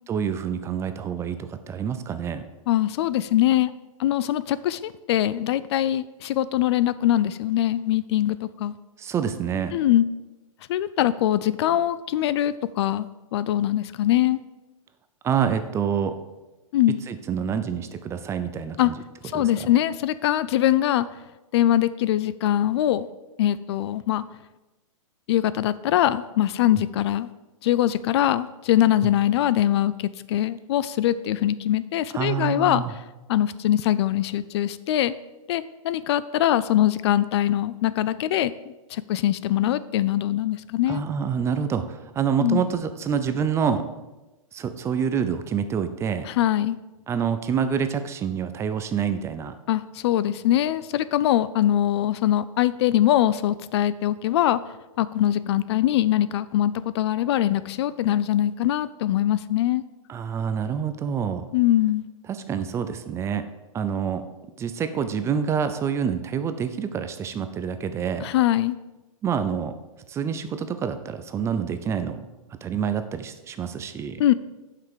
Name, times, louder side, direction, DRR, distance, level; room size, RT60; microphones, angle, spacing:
voice 1, 0.1-2.4 9.0-9.7 15.2-16.1 17.1-19.0 19.3-19.7 29.0-29.1 32.1-32.9 40.9-43.8 44.5-46.3 47.1-49.5 60.1-61.5 62.3-63.5 63.7-64.2 64.6-68.3 69.2-69.7 70.1-72.2 72.6-74.2, right 7 dB, 15° right, 10 dB, 0.5 m, -27 dB
voice 2, 2.7-3.7 4.0-8.7 9.7-10.1 10.7-14.4 16.7-17.0 18.8-18.9 19.3-21.1 21.5-23.1 23.4-24.2 25.3-27.3 27.6-32.8 33.3-35.1 35.5-38.5 38.9-41.0 42.4-42.6 46.3-46.8 49.7-54.6 55.0-59.8 61.5-62.1 68.2-68.8 74.2-74.3, left 12 dB, 50° left, 16 dB, 0.4 m, -22 dB
7.8 x 5.8 x 6.8 m, 1.1 s
hypercardioid pair, 140°, 18 cm